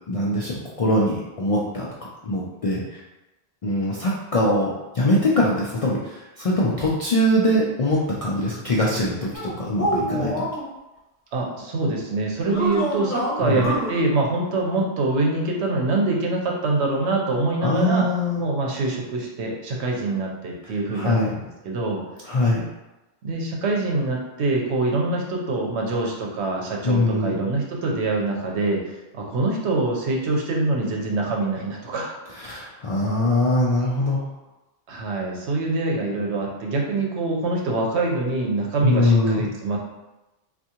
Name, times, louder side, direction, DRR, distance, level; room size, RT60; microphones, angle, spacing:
voice 1, 0.1-1.9 2.2-3.0 3.6-10.4 13.4-13.7 17.6-18.5 20.9-21.3 22.3-22.6 26.8-27.4 32.4-34.2 38.8-39.4, left 1 dB, 60° left, -5 dB, 0.3 m, -22 dB
sound 1, 9.3-10.6 12.4-13.9, right 1 dB, 15° left, 0.9 m, -26 dB
voice 2, 11.3-18.1 18.4-22.0 23.2-32.1 34.9-39.8, right 2 dB, 85° right, -1 dB, 1.0 m, -25 dB
3.5 x 2.5 x 2.8 m, 1.0 s
omnidirectional pair, 1.1 m